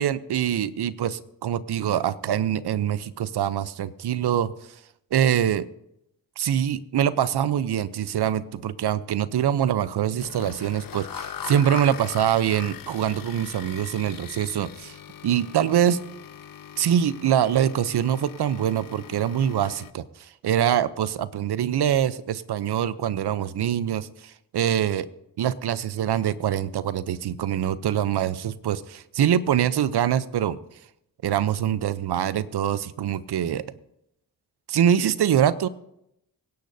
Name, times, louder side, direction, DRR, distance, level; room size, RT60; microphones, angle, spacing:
voice 1, 0.0-4.5 5.1-5.6 6.4-14.9 15.2-16.0 16.8-25.1 25.4-30.6 31.2-33.6 34.7-35.7, right 10 dB, 70° right, 16 dB, 0.8 m, -24 dB
sound 1, 10.2-19.9, left 9 dB, 55° left, 0.8 m, -40 dB
24.5 x 10.5 x 2.7 m, 0.80 s
cardioid pair, 50°, 42 cm